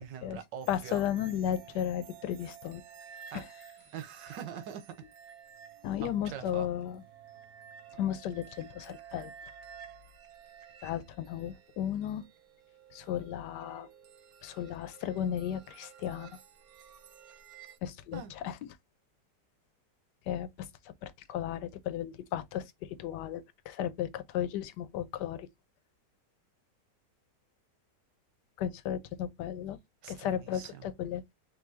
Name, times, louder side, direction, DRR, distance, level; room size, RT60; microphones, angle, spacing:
voice 1, 0.0-1.0 3.3-3.4 3.9-5.0 6.0-6.7 18.1-18.3 30.0-30.9, right 8 dB, 90° right, 1.5 m, -43 dB
sound 1, 0.6-17.8, right 8 dB, 65° right, 1.1 m, -53 dB
voice 2, 0.7-2.8 3.3-3.5 5.8-7.0 7.9-9.3 10.8-12.2 12.9-13.9 14.4-16.4 17.8-18.6 20.3-25.5 28.6-29.8 30.1-31.3, left 10 dB, 80° left, 1.2 m, -35 dB
5.4 x 2.6 x 2.7 m
omnidirectional pair, 1.9 m